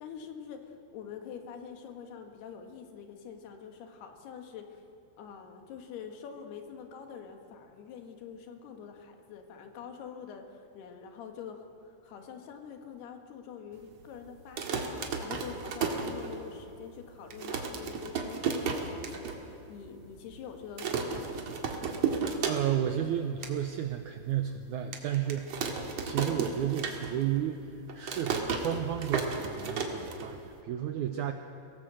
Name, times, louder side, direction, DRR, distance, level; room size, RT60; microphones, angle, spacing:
voice 1, 0.0-4.8 5.2-21.5, left 7 dB, 85° left, 5 dB, 3.6 m, -45 dB
sound 1, 14.4-16.7 17.0-17.1 17.3-19.4 19.7-19.8 20.0-20.4 20.8-22.9 23.2-23.5 24.1-24.2 24.9-27.4 27.6-30.6, right 5 dB, 50° right, 2.4 m, -33 dB
voice 2, 22.5-31.3, right 10 dB, 90° right, 6 dB, 1.7 m, -32 dB
24.0 x 17.5 x 7.6 m, 3.0 s
omnidirectional pair, 4.5 m